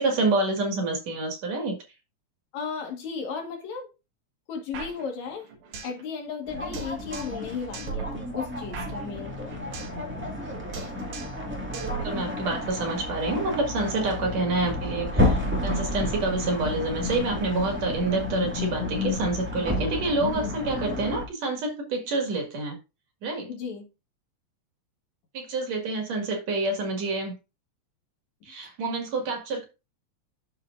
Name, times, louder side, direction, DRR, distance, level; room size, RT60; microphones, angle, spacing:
voice 1, 0.0-1.8 11.8-22.8 23.2-23.5 25.3-27.3 28.4-29.7, right 2 dB, 65° right, 3.1 m, -28 dB
voice 2, 2.5-3.9 4.5-5.5 5.8-9.6 23.5-23.9, left 6 dB, 75° left, 3.0 m, -35 dB
sound 1, 4.7-6.0 6.3-6.4 6.7-7.5 7.7-10.0 10.3-10.5 10.7-11.5 11.7-12.7, right 5 dB, 90° right, 2.9 m, -39 dB
sound 2, 6.5-21.3, left 2 dB, 5° right, 1.2 m, -30 dB
12.5 x 4.5 x 2.5 m
omnidirectional pair, 3.3 m